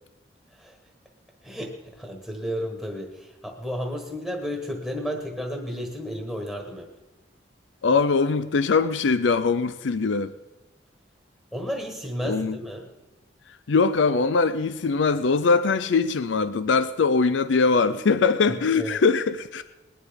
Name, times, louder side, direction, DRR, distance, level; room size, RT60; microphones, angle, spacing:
voice 1, 1.4-6.9 11.5-12.9 18.5-19.0, equal, 5° left, 2 dB, 1.4 m, -32 dB
voice 2, 7.8-10.3 12.2-12.6 13.7-19.6, left 4 dB, 80° left, 13 dB, 0.5 m, -22 dB
20.5 x 10.5 x 5.2 m, 1.1 s
head